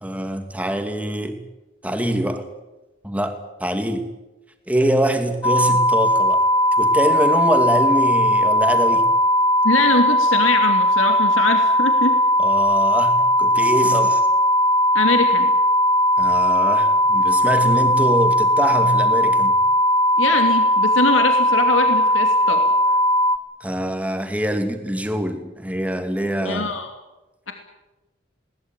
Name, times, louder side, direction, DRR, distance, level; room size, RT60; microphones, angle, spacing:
voice 1, 0.0-1.4 1.8-2.5 3.0-4.1 4.7-6.4 6.8-9.1 12.4-14.3 16.2-19.6 23.6-26.7, right 1 dB, 5° right, 6 dB, 2.4 m, -24 dB
sound 1, 5.4-23.4, equal, 20° left, 0.9 m, -18 dB
voice 2, 9.6-12.2 14.9-15.5 20.2-22.6 26.4-26.9 27.5-27.6, left 3 dB, 90° left, 5 dB, 2.7 m, -22 dB
21.5 x 19.5 x 9.2 m, 1.0 s
head